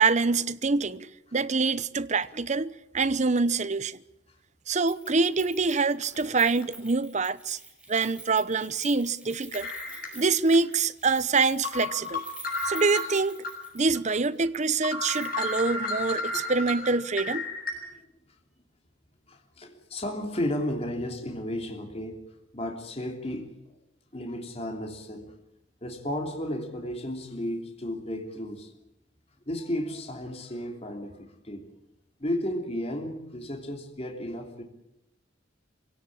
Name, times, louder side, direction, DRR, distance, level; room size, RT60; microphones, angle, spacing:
voice 1, 0.0-4.0 4.7-7.6 7.9-9.7 10.1-12.2 12.6-13.4 13.7-17.5, right 4 dB, 40° right, 0.8 m, -25 dB
Keys jangling, 4.9-14.0 14.3-14.4 15.1-15.6 15.9-16.0, right 3 dB, 5° right, 5.6 m, -48 dB
sound 1, 6.0-6.2 6.6-6.7 8.0-8.1 9.5-10.6 11.0-11.1 11.6-13.5 13.9-14.0 14.5-14.6 14.8-17.7, left 2 dB, 50° left, 7.4 m, -33 dB
voice 2, 19.3-22.3 22.5-23.5 24.1-25.3 25.8-28.7 29.5-31.7 32.2-34.6, left 1 dB, 35° left, 3.1 m, -33 dB
25.0 x 17.5 x 8.7 m
head